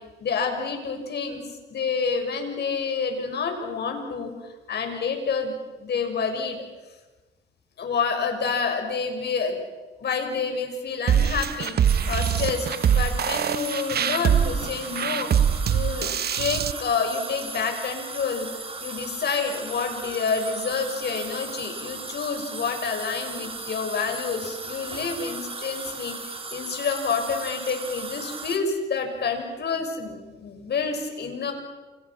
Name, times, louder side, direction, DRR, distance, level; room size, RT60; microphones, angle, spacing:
voice 1, 0.2-1.4 1.7-4.3 4.7-6.6 7.8-9.6 10.0-11.7 12.1-15.3 15.7-18.5 18.8-26.1 26.5-31.5, left 5 dB, 55° left, 5 dB, 6.4 m, -28 dB
sound 1, 11.1-16.7, right 8 dB, 55° right, 0.9 m, -23 dB
sound 2, 11.8-28.6, right 3 dB, 30° right, 4.1 m, -37 dB
29.5 x 29.0 x 6.1 m, 1.2 s
cardioid pair, 90°, 20 cm